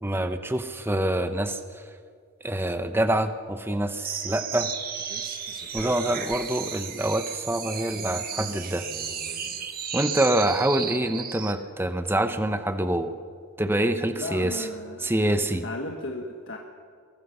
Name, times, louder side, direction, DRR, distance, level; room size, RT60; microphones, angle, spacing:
voice 1, 0.0-1.8 2.4-4.7 5.7-8.9 9.9-13.1 13.6-14.7 15.0-15.6, right 1 dB, 10° right, 9 dB, 0.8 m, -26 dB
sound 1, 4.0-11.6, right 7 dB, 40° right, 1.7 m, -34 dB
voice 2, 14.2-15.1 15.4-16.6, left 2 dB, 55° left, 1 dB, 1.6 m, -35 dB
23.0 x 18.0 x 6.7 m, 2.1 s
head